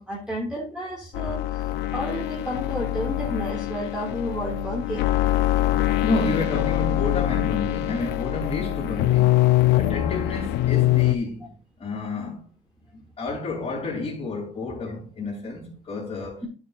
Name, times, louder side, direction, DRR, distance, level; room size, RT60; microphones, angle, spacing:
voice 1, 0.0-1.7 1.9-5.2, equal, 5° right, 2.5 m, -31 dB
sound 1, 1.1-11.2, left 15 dB, 85° left, 0.7 m, -23 dB
voice 2, 6.0-12.5 12.9-16.4, left 2 dB, 35° left, 3.4 m, -30 dB
10.5 x 6.4 x 2.6 m
cardioid pair, 110°, 17 cm